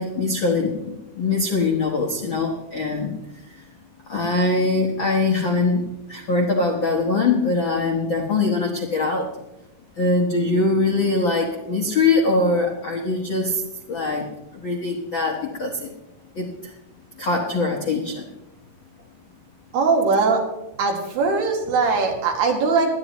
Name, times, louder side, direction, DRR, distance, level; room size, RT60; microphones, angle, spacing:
voice 1, 0.0-3.7 4.1-9.3 10.0-13.6 13.9-15.9 16.3-16.7 17.2-18.2, left 3 dB, 65° left, 0 dB, 1.2 m, -22 dB
voice 2, 19.7-20.4 20.8-22.9, right 4 dB, 90° right, 1 dB, 4.3 m, -20 dB
19.5 x 12.5 x 3.1 m, 0.95 s
omnidirectional pair, 4.5 m